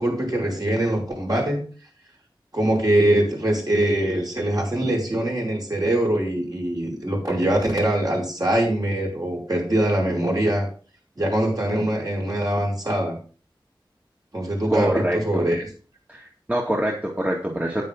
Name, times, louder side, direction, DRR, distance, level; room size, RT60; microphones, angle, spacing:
voice 1, 0.0-1.7 2.5-10.7 11.2-13.2 14.3-15.6, right 1 dB, 45° right, -2 dB, 5.3 m, -23 dB
voice 2, 14.7-15.5 16.1-17.8, right 1 dB, 15° right, -2 dB, 2.1 m, -25 dB
9.5 x 9.4 x 3.8 m, 0.39 s
wide cardioid pair, 55°, 9 cm